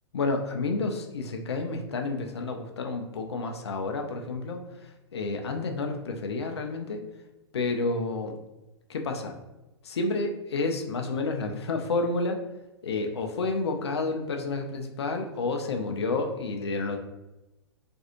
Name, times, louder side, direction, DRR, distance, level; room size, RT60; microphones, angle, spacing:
voice 1, 0.1-7.0 7.5-8.4 8.9-9.3 9.8-12.4 12.8-17.0, left 3 dB, 70° left, 4 dB, 0.4 m, -30 dB
2.5 x 2.3 x 2.8 m, 1.0 s
figure-of-eight pair, 105°, 14 cm